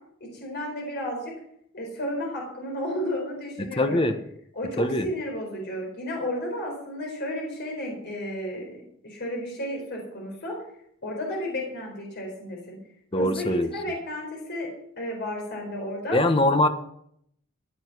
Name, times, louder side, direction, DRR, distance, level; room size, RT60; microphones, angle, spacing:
voice 1, 0.3-1.3 1.7-4.0 4.6-10.6 11.0-12.8 13.2-14.7 15.0-16.2, left 1 dB, 55° left, 0 dB, 4.4 m, -32 dB
voice 2, 3.6-4.2 4.8-5.1 13.1-13.7 16.1-16.7, left 1 dB, 25° left, 8 dB, 1.2 m, -22 dB
16.0 x 9.0 x 6.1 m, 0.71 s
head